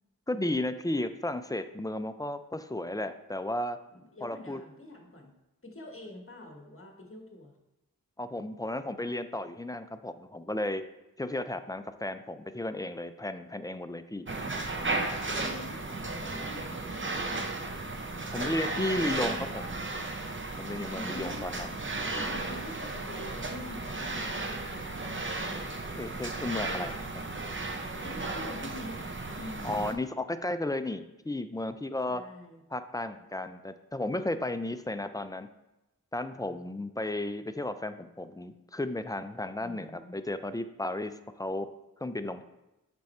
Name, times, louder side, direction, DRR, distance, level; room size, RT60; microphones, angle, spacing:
voice 1, 0.3-3.8 4.2-4.6 8.2-10.8 11.2-14.3 18.3-19.8 20.6-21.8 26.0-27.1 29.6-32.2 32.7-35.5 36.1-41.7 42.0-42.4, left 1 dB, 10° left, 10 dB, 0.4 m, -34 dB
voice 2, 3.9-5.3 5.6-7.5 14.8-17.9 20.9-21.5 22.0-25.0 25.4-25.8 28.0-29.0 29.3-29.9 32.1-32.6 39.6-40.2, left 1 dB, 40° left, 2 dB, 1.4 m, -46 dB
sound 1, 14.3-29.9, right 2 dB, 35° right, 0.6 m, -35 dB
6.1 x 4.4 x 4.3 m, 0.96 s
wide cardioid pair, 40°, 35 cm